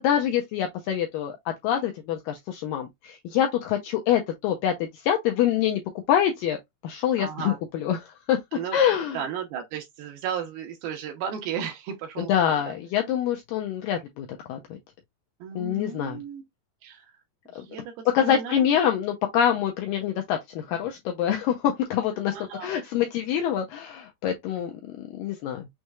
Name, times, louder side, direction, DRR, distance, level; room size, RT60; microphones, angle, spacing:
voice 1, 0.0-1.4 1.6-5.8 6.1-6.6 6.8-8.4 8.7-9.2 12.2-14.8 15.6-16.2 17.6-17.7 18.1-22.3 22.6-25.7, left 9 dB, 85° left, 2.0 m, -25 dB
voice 2, 7.2-7.6 8.5-8.8 9.1-12.7 15.4-16.4 16.8-17.1 17.5-18.8 22.3-22.9, right 8 dB, 80° right, 2.5 m, -35 dB
6.3 x 3.0 x 2.3 m
omnidirectional pair, 4.5 m